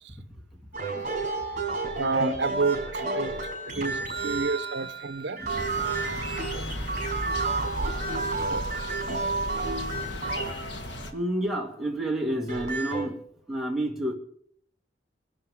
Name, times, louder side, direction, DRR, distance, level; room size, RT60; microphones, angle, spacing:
voice 1, 0.3-0.6 0.9-1.1 1.5-2.0 3.7-4.4 4.8-4.9 5.4-5.6 6.7-6.9 7.3-7.6 8.1-8.2 8.5-8.6 11.1-14.1, right 1 dB, ahead, 2.4 m, -32 dB
sound 1, 0.7-11.2 12.3-13.0, right 3 dB, 45° right, 5.2 m, -31 dB
voice 2, 2.0-4.0 4.2-5.4 6.5-6.7 7.8-7.9 8.5-8.6, right 4 dB, 75° right, 0.8 m, -29 dB
sound 2, 5.5-11.1, left 1 dB, 80° left, 2.0 m, -35 dB
25.0 x 12.0 x 3.7 m
head